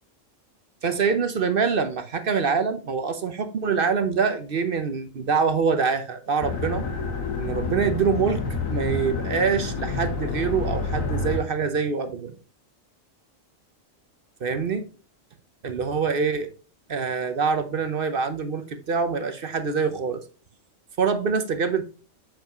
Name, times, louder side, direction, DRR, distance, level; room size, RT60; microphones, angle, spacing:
voice 1, 0.8-6.8 7.4-8.4 8.7-12.3 14.4-14.8 15.6-16.5 16.9-20.2 21.0-21.8, right 5 dB, 50° right, 0.9 m, -25 dB
sound 1, 6.4-11.4, left 4 dB, 80° left, 1.7 m, -28 dB
7.2 x 5.4 x 2.9 m
omnidirectional pair, 1.4 m